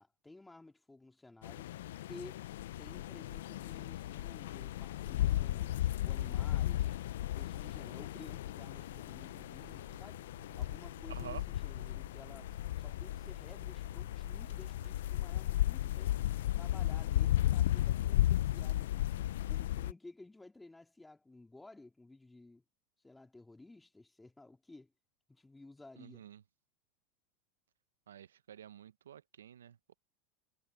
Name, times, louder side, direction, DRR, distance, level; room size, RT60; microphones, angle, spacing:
voice 1, 0.0-1.7 2.1-2.5 2.8-7.0 7.4-10.2 10.6-16.2 16.5-19.1 19.5-22.6 23.0-24.9 25.3-26.3, left 2 dB, 10° left, 2.6 m, -55 dB
sound 1, 1.4-19.9, left 13 dB, 75° left, 0.5 m, -35 dB
sound 2, 8.6-15.2, right 13 dB, 45° right, 1.7 m, -61 dB
voice 2, 11.1-11.4 26.0-26.4 28.1-29.9, right 9 dB, 85° right, 0.7 m, -49 dB
hypercardioid pair, 95°, 0 cm